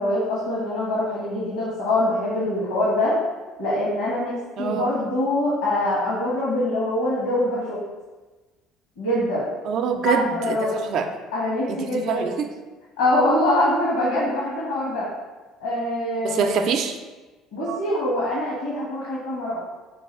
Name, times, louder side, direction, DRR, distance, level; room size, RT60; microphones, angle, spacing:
voice 1, 0.0-3.2 3.6-7.8 9.0-9.5 10.0-10.8 11.3-12.3 13.0-15.1 15.6-16.4 17.5-19.6, left 1 dB, 85° left, -7 dB, 1.2 m, -24 dB
voice 2, 4.6-4.9 9.6-11.1 11.7-12.5 16.2-17.0 17.7-17.8, right 6 dB, 60° right, 6 dB, 0.5 m, -25 dB
4.6 x 2.4 x 4.5 m, 1.2 s
hypercardioid pair, 65°, 0 cm